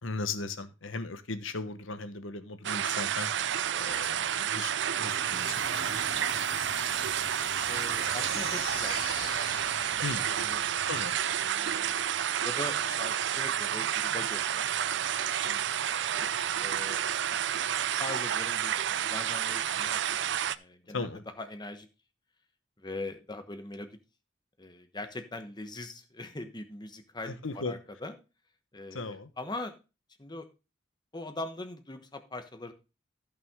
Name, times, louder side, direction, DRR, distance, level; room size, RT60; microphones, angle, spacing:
voice 1, 0.0-6.2 10.0-10.3 10.9-11.2 20.9-21.2 27.3-27.8 28.9-29.3, left 3 dB, 80° left, 1.2 m, -37 dB
sound 1, 2.6-20.5, right 9 dB, 60° right, 0.5 m, -30 dB
sound 2, 5.0-11.9, left 4 dB, 50° left, 2.9 m, -43 dB
voice 2, 7.7-9.3 9.7-10.0 10.3-10.6 11.4-12.1 12.4-17.0 17.3-17.4 18.0-20.2 20.5-21.1 21.4-21.9 22.8-24.0 24.6-28.2 28.7-29.8 30.2-30.5 31.1-32.7, left 2 dB, 20° left, 1.1 m, -42 dB
14.0 x 6.0 x 3.6 m
head